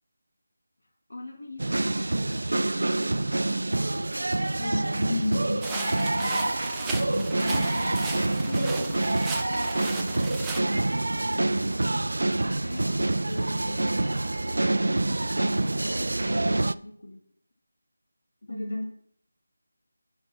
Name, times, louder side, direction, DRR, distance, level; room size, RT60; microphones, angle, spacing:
voice 1, 1.1-4.1 7.4-9.0 9.5-12.1 12.6-14.6 14.9-17.2 18.4-18.8, left 2 dB, 70° left, 1 dB, 2.0 m, -41 dB
sound 1, 1.6-16.7, right 2 dB, 80° right, 0.4 m, -26 dB
voice 2, 4.6-6.4 7.1-8.3 18.5-18.8, left 2 dB, 45° left, 0 dB, 2.5 m, -33 dB
sound 2, 5.6-10.6, right 4 dB, 5° right, 0.5 m, -36 dB
10.5 x 4.0 x 6.1 m, 0.64 s
figure-of-eight pair, 175°, 0 cm